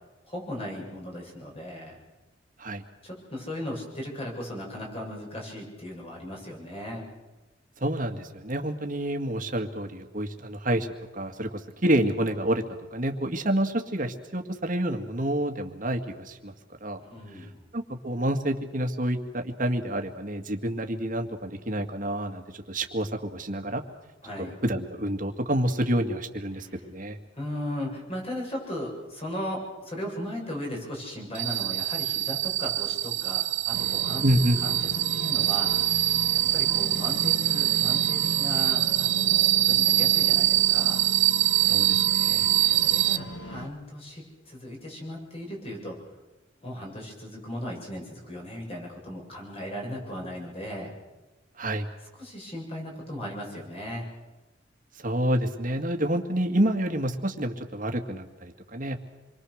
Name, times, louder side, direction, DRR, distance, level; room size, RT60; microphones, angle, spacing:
voice 1, 0.3-2.0 3.0-7.1 17.0-17.6 24.2-24.5 26.5-26.8 27.4-34.2 34.6-34.8 35.1-35.7 36.5-41.0 42.6-46.0 46.6-50.9 52.1-54.1, left 1 dB, 30° left, -1 dB, 7.6 m, -37 dB
voice 2, 7.8-10.9 11.1-11.5 11.8-12.6 12.9-16.5 16.8-17.0 17.7-23.8 24.4-27.2 34.2-34.6 41.7-42.5 51.6-51.9 55.0-59.0, right 1 dB, 45° right, 5 dB, 2.2 m, -28 dB
sound 1, 31.3-43.2, right 15 dB, 65° right, 1.1 m, -24 dB
sound 2, 33.7-43.7, equal, 65° left, 2.2 m, -36 dB
27.5 x 23.5 x 6.6 m, 1.1 s
head